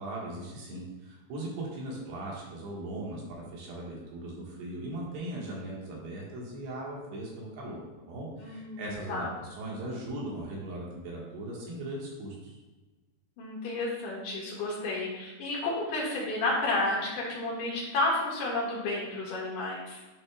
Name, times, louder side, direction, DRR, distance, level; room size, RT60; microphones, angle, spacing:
voice 1, 0.0-12.5, right 1 dB, 90° right, -3 dB, 3.7 m, -39 dB
voice 2, 8.4-8.8 9.1-9.3 13.4-20.0, left 2 dB, 60° left, -4 dB, 2.9 m, -31 dB
10.0 x 5.5 x 2.3 m, 1.2 s
omnidirectional pair, 4.7 m